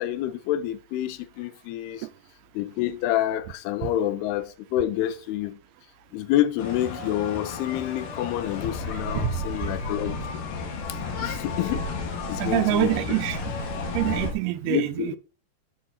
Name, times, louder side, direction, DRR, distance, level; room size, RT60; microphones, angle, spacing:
voice 1, 0.0-2.1 2.5-5.6 6.1-10.4 10.9-11.9 12.3-12.9 14.6-15.2, left 12 dB, 90° left, 2.6 m, -28 dB
sound 1, 6.6-14.3, left 3 dB, 65° left, 2.6 m, -32 dB
voice 2, 12.4-13.4 13.9-15.2, right 16 dB, 85° right, 2.5 m, -25 dB
7.6 x 5.1 x 4.1 m
omnidirectional pair, 4.6 m